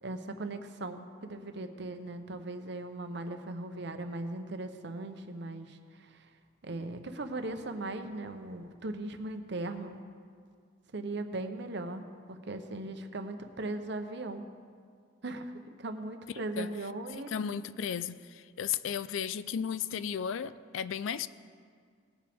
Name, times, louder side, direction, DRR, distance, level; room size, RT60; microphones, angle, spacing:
voice 1, 0.0-6.3 6.6-10.0 10.9-14.4 15.2-17.3, right 2 dB, 60° right, 0.8 m, -38 dB
voice 2, 17.1-21.3, left 8 dB, 80° left, 0.4 m, -34 dB
19.5 x 7.6 x 3.5 m
head